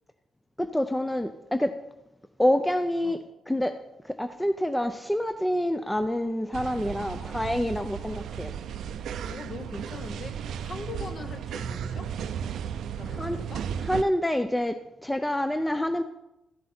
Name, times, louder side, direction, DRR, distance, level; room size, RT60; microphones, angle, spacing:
voice 1, 0.6-1.7 2.4-3.2 3.5-3.8 4.1-8.5 13.2-13.4 13.9-14.8 15.0-16.0, left 1 dB, 5° left, 9 dB, 0.4 m, -27 dB
sound 1, 6.5-14.0, right 8 dB, 80° right, 0.4 m, -35 dB
voice 2, 6.9-7.4 7.9-8.3 9.3-12.1 13.0-13.7, left 4 dB, 45° left, 8 dB, 1.0 m, -42 dB
14.0 x 7.3 x 4.3 m, 0.92 s
cardioid pair, 125°, 0 cm